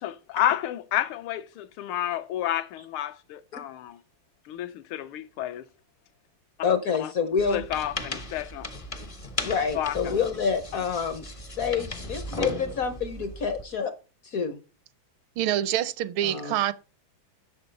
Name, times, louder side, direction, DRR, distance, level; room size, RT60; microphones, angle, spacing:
voice 1, 0.0-4.0 4.5-5.6 7.0-7.1 7.5-8.7 9.7-10.1, left 11 dB, 85° left, 1.6 m, -30 dB
voice 2, 6.6-7.6 9.4-11.2 11.6-13.9 14.3-14.6 16.2-16.5, left 6 dB, 60° left, 0.9 m, -27 dB
sound 1, 7.4-13.7, left 2 dB, 45° left, 0.4 m, -36 dB
voice 3, 15.4-16.7, right 12 dB, 80° right, 1.5 m, -26 dB
7.8 x 6.9 x 5.3 m
omnidirectional pair, 2.3 m